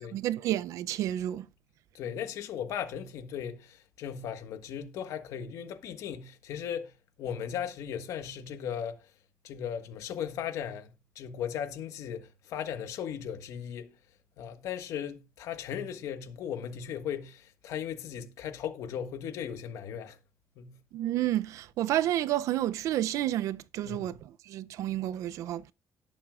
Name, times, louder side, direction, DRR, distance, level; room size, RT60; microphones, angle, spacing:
voice 1, 0.0-1.5 20.9-24.1 24.5-25.7, right 13 dB, 85° right, 0.5 m, -30 dB
voice 2, 1.9-6.9 7.2-9.1 9.4-13.9 14.4-20.2 20.6-20.8 23.8-24.1, left 8 dB, 80° left, 1.5 m, -37 dB
19.0 x 7.1 x 2.4 m
cardioid pair, 175°, 5 cm